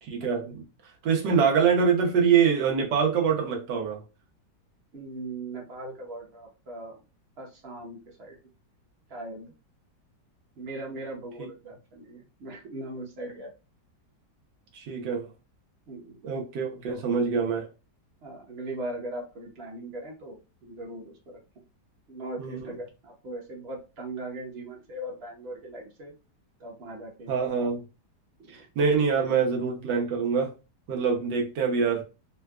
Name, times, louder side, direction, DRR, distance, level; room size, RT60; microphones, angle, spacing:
voice 1, 0.0-0.6 1.0-4.0 14.7-15.3 16.2-17.7 22.4-22.7 27.3-27.8 28.5-30.5 30.9-32.0, right 6 dB, 85° right, 1.5 m, -25 dB
voice 2, 4.9-7.0 7.4-8.4 9.1-9.5 10.6-13.5 15.9-16.2 16.9-17.0 18.2-21.4 22.1-26.1 26.6-27.3 28.5-28.6 29.2-29.5 31.2-31.4, right 2 dB, 45° right, 1.0 m, -39 dB
3.7 x 2.3 x 2.3 m
omnidirectional pair, 1.8 m